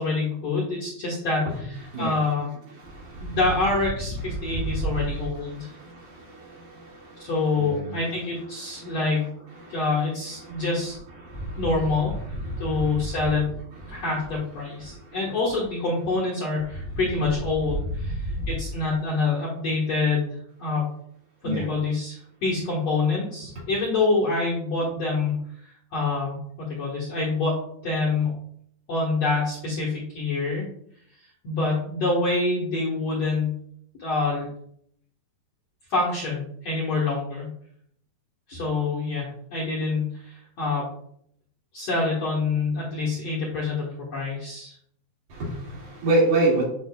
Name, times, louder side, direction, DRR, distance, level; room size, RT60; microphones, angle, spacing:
voice 1, 0.0-2.5 3.2-5.7 7.2-9.3 9.7-11.0 11.6-12.1 12.6-13.5 13.9-20.9 21.4-28.4 28.9-30.7 31.4-33.6 34.0-34.5 35.9-37.5 38.5-40.9 41.7-43.8 44.1-44.7, left 3 dB, 55° left, -6 dB, 1.8 m, -26 dB
voice 2, 4.5-5.2 7.6-8.1 9.0-9.1 9.8-10.0 11.3-11.9 12.3-12.9 13.2-13.3 13.9-14.3 21.4-21.7 45.3-46.6, right 2 dB, 55° right, -5 dB, 3.8 m, -26 dB
9.2 x 5.7 x 2.4 m, 0.68 s
omnidirectional pair, 5.0 m